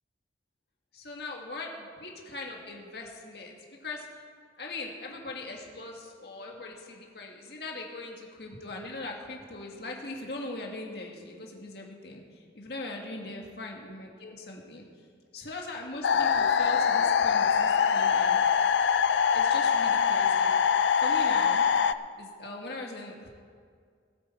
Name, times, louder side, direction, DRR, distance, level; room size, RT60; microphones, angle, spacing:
voice 1, 0.9-3.5 3.8-4.1 4.6-14.8 15.3-18.4 19.3-20.5 21.0-21.6 22.2-23.3, left 2 dB, 60° left, 0 dB, 1.9 m, -40 dB
sound 1, 16.0-21.9, left 7 dB, 75° left, 0.4 m, -23 dB
20.0 x 8.8 x 4.5 m, 2.1 s
head